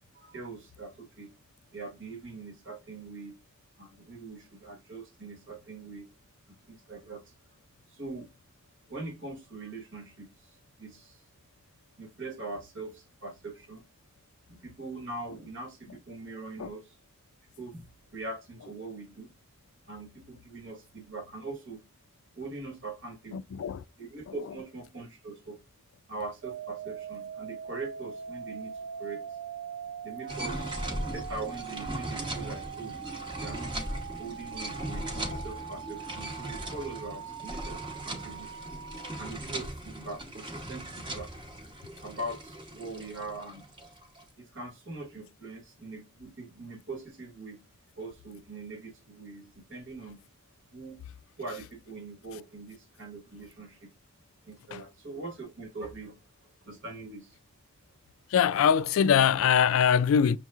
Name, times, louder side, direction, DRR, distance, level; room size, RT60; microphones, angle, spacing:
voice 1, 0.1-1.3 1.7-3.4 3.8-6.1 6.7-7.2 7.9-8.3 8.9-10.3 10.8-11.2 12.0-13.8 14.5-16.8 17.6-17.9 18.1-19.3 19.8-21.8 22.4-23.5 24.0-25.6 26.1-29.3 30.0-32.9 33.4-33.9 34.2-38.5 39.2-41.3 42.0-43.6 44.4-47.6 48.0-50.2 50.7-51.0 51.4-53.9 54.4-56.2 56.6-57.4, right 3 dB, 60° right, 1.2 m, -42 dB
voice 2, 23.3-23.8 35.3-35.4 54.7-54.8 58.3-60.4, left 7 dB, 70° left, 0.3 m, -23 dB
sound 1, 26.4-39.3, right 8 dB, 80° right, 0.3 m, -42 dB
sound 2, 30.3-44.2, right 1 dB, 20° right, 0.9 m, -38 dB
6.1 x 3.0 x 2.3 m
head